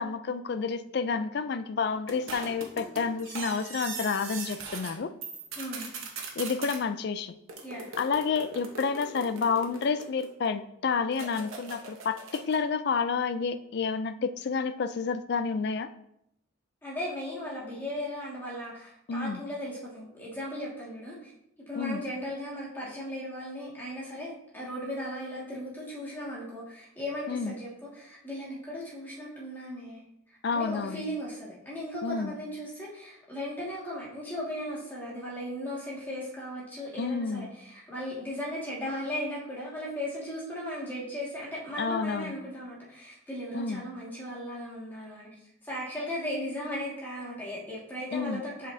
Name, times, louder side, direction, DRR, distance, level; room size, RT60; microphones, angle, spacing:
voice 1, 0.0-5.1 6.4-7.3 8.0-15.9 19.1-19.4 21.7-22.0 27.3-27.5 30.4-31.0 32.0-32.3 37.0-37.5 41.8-42.3 43.5-43.8 48.1-48.4, left 5 dB, 50° left, 11 dB, 0.4 m, -30 dB
sound 1, 2.1-4.9 5.2-6.8 7.5-10.5 11.1-12.6, right 4 dB, 80° right, 1.0 m, -40 dB
voice 2, 5.6-5.9 7.6-7.9 16.8-21.3 21.7-30.0 30.5-45.3 45.6-48.7, left 1 dB, 10° left, -6 dB, 1.8 m, -37 dB
8.0 x 5.0 x 2.7 m, 0.77 s
head